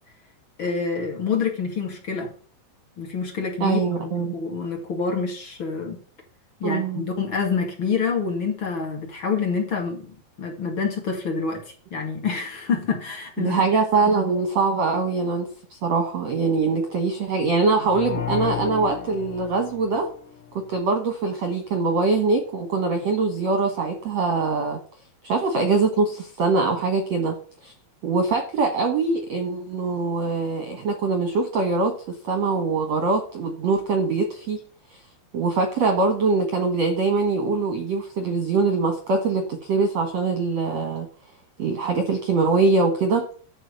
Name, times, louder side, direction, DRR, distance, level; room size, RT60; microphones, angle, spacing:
voice 1, 0.6-2.3 3.0-6.0 6.6-13.6, left 5 dB, 45° left, 1.7 m, -27 dB
voice 2, 3.6-4.3 6.6-7.0 13.4-20.1 20.7-24.8 25.2-27.3 27.6-27.7 28.0-31.9 32.2-34.6 35.3-41.1 41.6-43.2, right 4 dB, 65° right, 1.7 m, -23 dB
sound 1, 17.8-20.7, left 10 dB, 80° left, 4.0 m, -32 dB
12.5 x 4.7 x 8.0 m
omnidirectional pair, 5.6 m